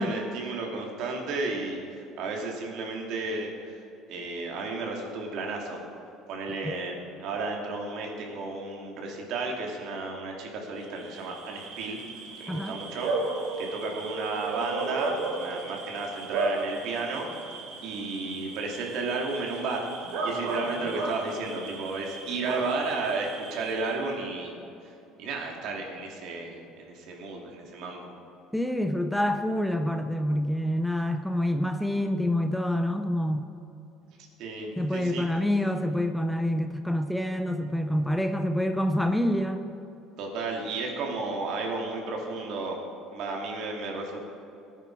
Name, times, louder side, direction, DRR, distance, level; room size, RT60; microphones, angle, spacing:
voice 1, 0.0-3.8 4.1-5.8 6.3-12.0 12.4-13.1 13.6-17.3 17.8-19.9 20.2-24.5 25.2-28.1 34.4-35.3 40.2-42.8 43.1-44.2, right 3 dB, 60° right, 0 dB, 2.7 m, -33 dB
Bark / Cricket, 10.8-24.1, right 3 dB, 80° right, 3.0 m, -35 dB
voice 2, 12.5-12.8 28.5-33.5 34.8-39.6, left 1 dB, ahead, 7 dB, 0.5 m, -27 dB
18.0 x 10.0 x 4.7 m, 2.7 s
cardioid pair, 145°, 0 cm